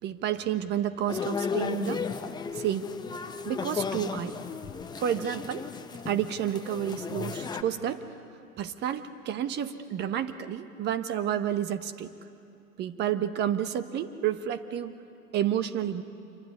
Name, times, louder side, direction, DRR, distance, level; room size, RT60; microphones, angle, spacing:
voice 1, 0.0-2.0 2.5-2.9 3.4-4.4 5.0-5.6 6.1-8.0 8.6-12.1 12.8-15.0 15.3-16.0, right 10 dB, 25° right, 11 dB, 1.0 m, -30 dB
sound 1, 1.1-7.6, left 5 dB, 10° left, 0.9 m, -34 dB
26.5 x 23.5 x 9.5 m, 2.6 s
hypercardioid pair, 120°, 45 cm